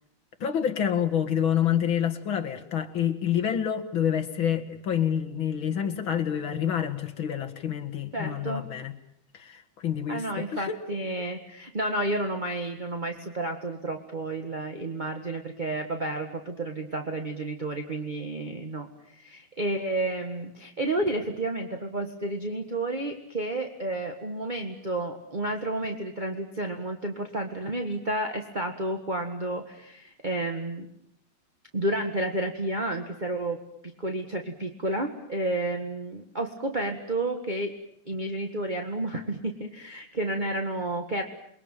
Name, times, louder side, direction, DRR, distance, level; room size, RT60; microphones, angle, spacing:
voice 1, 0.4-8.9 9.3-10.8, left 9 dB, 45° left, 5 dB, 2.3 m, -28 dB
voice 2, 8.1-8.6 10.1-30.9 31.7-33.6 34.0-37.7 38.1-41.2, right 1 dB, 20° right, 5 dB, 1.2 m, -31 dB
29.0 x 22.5 x 9.1 m, 0.71 s
omnidirectional pair, 3.5 m